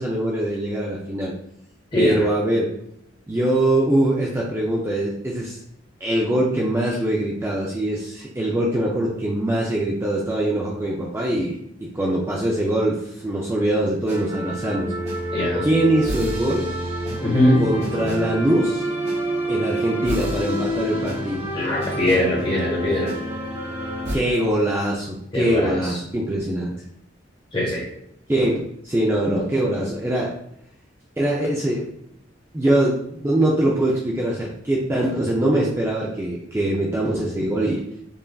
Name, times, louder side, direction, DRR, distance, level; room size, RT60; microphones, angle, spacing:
voice 1, 0.0-1.3 2.0-2.7 3.3-5.6 6.0-14.9 15.6-16.6 17.6-18.9 19.5-21.5 24.1-26.7 28.3-30.3 31.2-31.8 32.5-37.8, right 1 dB, 15° right, -3 dB, 0.4 m, -23 dB
voice 2, 1.9-2.2 15.3-15.7 17.2-17.6 21.5-23.1 25.3-25.8 27.5-27.8, left 1 dB, 25° left, -4 dB, 1.3 m, -21 dB
sound 1, 14.1-24.1, equal, 35° right, 1.1 m, -28 dB
5.4 x 2.5 x 2.3 m, 0.76 s
head